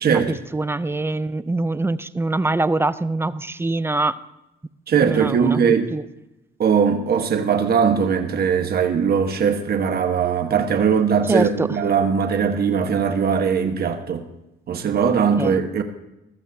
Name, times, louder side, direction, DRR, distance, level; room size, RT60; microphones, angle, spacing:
voice 1, 0.0-0.4 4.9-5.9 6.6-14.2 14.7-15.8, right 6 dB, 50° right, 1.3 m, -20 dB
voice 2, 0.5-4.2 5.0-6.0 11.3-11.7 15.4-15.6, right 2 dB, 10° right, 0.5 m, -24 dB
21.5 x 14.0 x 2.7 m
cardioid pair, 90°, 20 cm